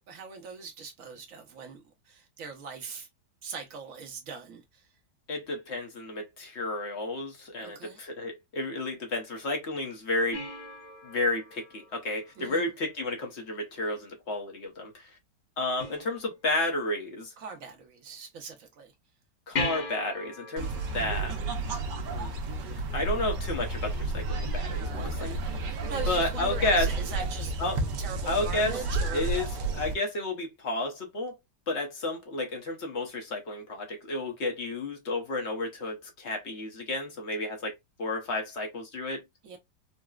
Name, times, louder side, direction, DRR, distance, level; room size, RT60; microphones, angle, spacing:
voice 1, 0.0-3.1 3.4-4.9 7.6-8.0 12.4-12.7 17.4-18.9 25.0-27.5 28.0-29.4 39.4-39.6, right 5 dB, 55° right, 1.1 m, -41 dB
voice 2, 5.3-10.4 11.0-15.1 15.6-17.3 19.5-21.3 22.1-22.3 22.9-25.3 26.1-26.9 27.6-27.8 28.3-28.8 29.1-29.5 29.7-31.4 31.7-37.7 38.0-39.2, left 2 dB, 50° left, 0.9 m, -31 dB
sound 1, 10.3-12.9 15.8-16.8 19.5-22.5 25.5-25.6, left 3 dB, 70° left, 1.9 m, -39 dB
sound 2, 20.6-29.9, right 2 dB, 85° right, 1.3 m, -31 dB
4.0 x 2.0 x 2.3 m
omnidirectional pair, 1.8 m